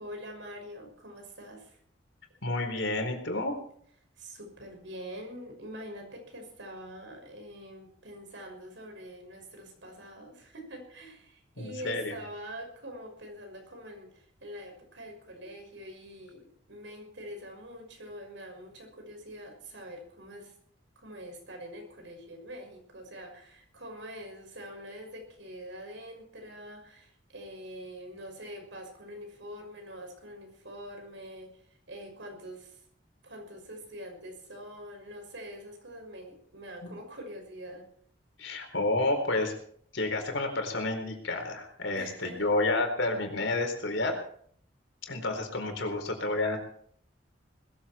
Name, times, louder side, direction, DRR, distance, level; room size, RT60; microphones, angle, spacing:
voice 1, 0.0-1.8 4.2-20.5 21.0-31.5 31.9-32.8 33.2-37.9 41.9-42.5 45.6-46.1, equal, 75° right, 3 dB, 6.1 m, -45 dB
voice 2, 2.4-3.5 11.6-12.2 36.8-36.9 38.4-39.5 39.9-44.2 45.1-46.6, left 2 dB, 85° left, 4 dB, 4.3 m, -30 dB
20.5 x 14.5 x 4.4 m, 0.62 s
head